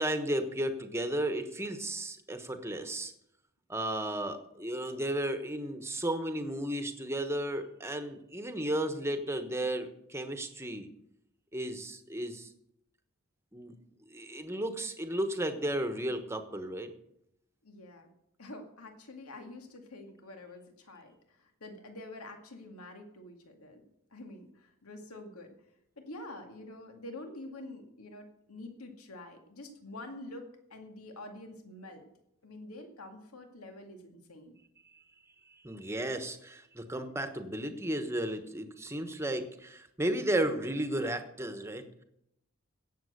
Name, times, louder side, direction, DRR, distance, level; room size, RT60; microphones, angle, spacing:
voice 1, 0.0-3.1 3.7-10.9 11.5-12.5 13.5-13.7 14.1-16.9 35.6-42.0, right 1 dB, 10° right, 8 dB, 1.1 m, -34 dB
voice 2, 17.6-18.1 18.4-25.5 26.0-32.1 32.4-34.5, left 2 dB, 85° left, 4 dB, 2.1 m, -47 dB
17.0 x 7.5 x 6.6 m, 0.79 s
head